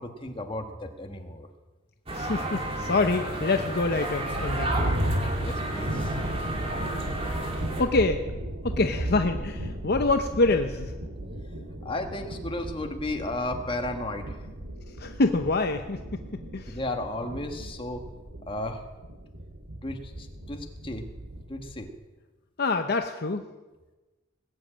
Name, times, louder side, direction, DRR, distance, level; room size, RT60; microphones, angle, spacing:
voice 1, 0.0-1.5 5.4-6.2 11.8-14.4 16.7-18.1 18.4-18.8 19.8-21.1 21.5-21.9, left 1 dB, 25° left, 5 dB, 1.4 m, -34 dB
voice 2, 2.1-5.0 7.2-7.3 7.8-8.2 8.6-10.9 15.0-16.8 22.6-23.4, left 3 dB, 50° left, 7 dB, 0.7 m, -26 dB
sound 1, 2.1-7.8, right 1 dB, 30° right, 2.3 m, -32 dB
sound 2, 3.9-21.9, right 1 dB, 75° right, 2.2 m, -35 dB
19.5 x 7.5 x 8.8 m, 1.2 s
head